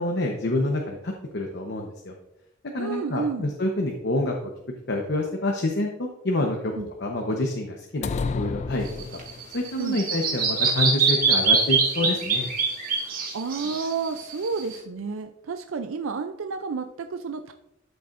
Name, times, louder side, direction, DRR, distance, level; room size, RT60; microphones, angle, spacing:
voice 1, 0.0-2.1 2.7-4.3 4.9-6.7 7.0-8.1 8.3-8.9 9.5-12.5, left 1 dB, 60° left, 1 dB, 1.0 m, -27 dB
voice 2, 2.8-3.5 6.7-6.9 9.8-10.0 12.9-17.5, right 5 dB, 80° right, 7 dB, 0.5 m, -31 dB
sound 1, 8.0-9.6, left 4 dB, 35° left, 0.3 m, -30 dB
Bird vocalization bird call bird song, 8.9-14.8, right 4 dB, 45° right, 2.2 m, -24 dB
13.0 x 6.8 x 2.6 m, 0.88 s
head